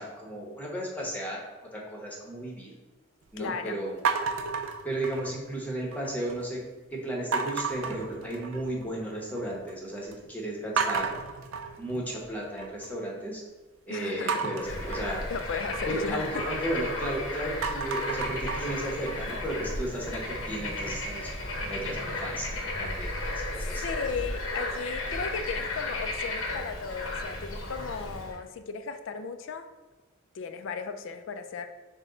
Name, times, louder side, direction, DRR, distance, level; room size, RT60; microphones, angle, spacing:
voice 1, 0.0-1.4 1.7-2.7 3.3-3.9 4.8-6.6 6.9-11.1 11.8-13.4 13.9-15.2 15.9-22.5 22.8-23.8, right 1 dB, 10° left, -3 dB, 0.9 m, -34 dB
voice 2, 3.4-3.8 13.9-14.8 15.3-16.4 23.1-29.7 30.3-31.7, left 5 dB, 65° left, 9 dB, 0.4 m, -36 dB
sound 1, 4.0-5.5 5.9-6.4 7.3-8.8 9.2-9.7 10.1-10.2 10.8-12.9 14.3-17.1 17.5-20.4, right 5 dB, 75° right, 0.4 m, -33 dB
Bird / Frog, 14.6-28.4, left 2 dB, 85° left, 0.9 m, -34 dB
6.2 x 2.2 x 3.8 m, 1.2 s
head